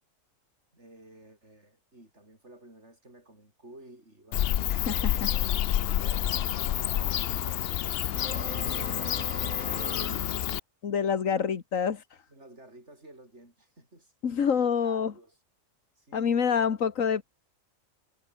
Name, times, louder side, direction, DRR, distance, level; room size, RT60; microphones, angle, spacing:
voice 1, 0.7-10.6 11.1-11.5 12.3-14.1 14.7-15.4 16.0-16.7, right 1 dB, 60° right, 8.6 m, -52 dB
Bird / Cricket, 4.3-10.6, left 12 dB, 60° left, 0.7 m, -28 dB
voice 2, 4.7-5.3 10.8-12.2 14.2-15.1 16.1-17.3, left 7 dB, 80° left, 1.8 m, -27 dB
sound 1, 8.1-10.3, right 1 dB, 85° right, 8.7 m, -40 dB
omnidirectional pair, 1.4 m